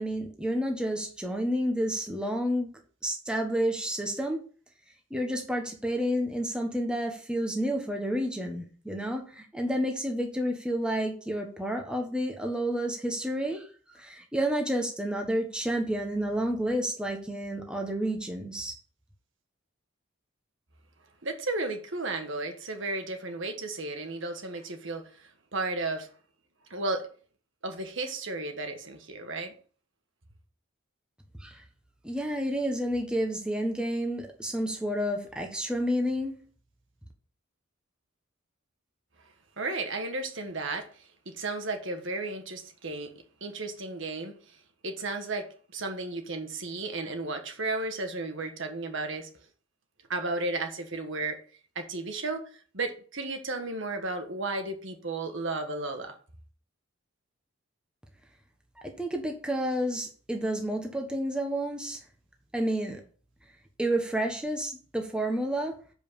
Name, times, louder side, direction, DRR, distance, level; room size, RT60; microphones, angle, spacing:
voice 1, 0.0-2.7 3.0-4.4 5.1-13.7 14.0-18.7 31.4-31.6 32.0-36.3 58.8-62.0 62.5-63.0 63.8-65.7, equal, 5° right, 1.2 m, -30 dB
voice 2, 21.2-25.1 25.5-26.1 26.7-27.1 27.6-29.5 39.6-40.9 41.2-43.1 43.4-44.3 44.8-49.3 50.1-51.4 51.7-52.4 52.7-56.1, right 2 dB, 65° right, 1.5 m, -33 dB
7.3 x 5.2 x 7.2 m
head